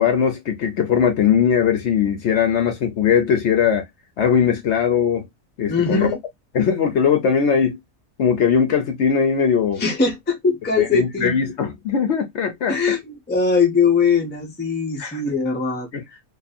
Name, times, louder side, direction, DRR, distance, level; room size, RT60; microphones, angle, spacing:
voice 1, 0.0-3.8 4.2-5.3 5.6-6.1 6.5-7.8 8.2-9.8 10.8-12.8 15.0-15.2 15.9-16.0, left 7 dB, 65° left, 0.9 m, -19 dB
voice 2, 5.7-6.2 9.8-11.4 12.7-15.9, left 5 dB, 10° left, 0.5 m, -21 dB
2.6 x 2.6 x 2.3 m
omnidirectional pair, 1.4 m